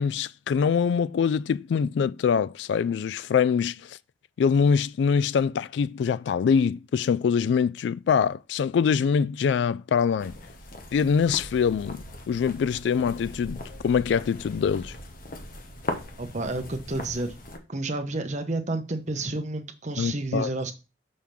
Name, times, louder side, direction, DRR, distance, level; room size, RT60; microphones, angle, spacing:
voice 1, 0.0-4.0 4.4-10.3 10.9-14.9 20.0-20.5, left 6 dB, 75° left, 0.3 m, -24 dB
sound 1, 10.2-17.6, left 1 dB, 50° left, 1.1 m, -39 dB
voice 2, 16.2-17.3 17.7-20.7, right 2 dB, 40° right, 0.9 m, -30 dB
6.5 x 3.5 x 5.8 m
head